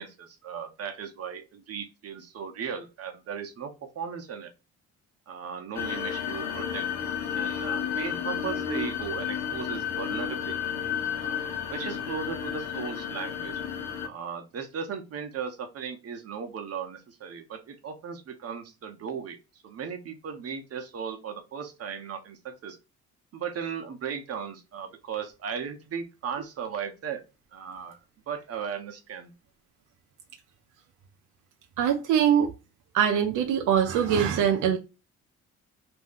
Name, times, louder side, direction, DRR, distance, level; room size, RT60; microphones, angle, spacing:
voice 1, 0.0-4.5 5.3-6.9 7.3-10.5 11.2-13.6 14.0-19.4 19.6-22.8 23.3-27.2 27.5-28.0 28.3-29.3, right 7 dB, 50° right, 0.8 m, -37 dB
sound 1, 5.7-14.1, left 8 dB, 60° left, 0.7 m, -32 dB
voice 2, 31.8-32.5 32.9-34.8, right 8 dB, 85° right, 0.5 m, -23 dB
2.5 x 2.2 x 3.5 m
cardioid pair, 90°, 30 cm